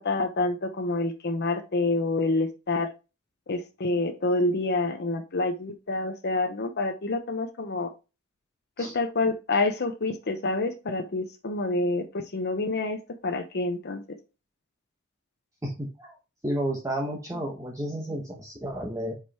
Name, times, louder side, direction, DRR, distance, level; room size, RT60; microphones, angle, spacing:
voice 1, 0.0-2.9 3.5-7.9 8.8-14.0, left 2 dB, 55° left, 5 dB, 0.9 m, -27 dB
voice 2, 15.6-16.1 16.4-19.1, right 1 dB, 15° right, -1 dB, 1.1 m, -32 dB
5.1 x 4.8 x 4.2 m, 0.28 s
head